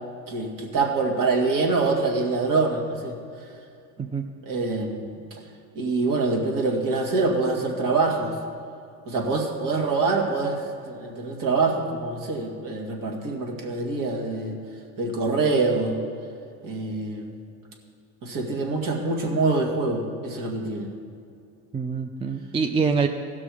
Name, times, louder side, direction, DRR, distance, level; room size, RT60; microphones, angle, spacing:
voice 1, 0.3-3.1 4.4-5.2 5.8-8.3 9.1-10.6 10.9-14.6 15.0-16.0 16.6-17.3 18.2-20.9, right 3 dB, 45° right, 0 dB, 2.2 m, -25 dB
voice 2, 21.7-23.1, right 5 dB, 15° right, 6 dB, 0.4 m, -25 dB
16.0 x 6.0 x 4.9 m, 2.4 s
supercardioid pair, 85°, 44 cm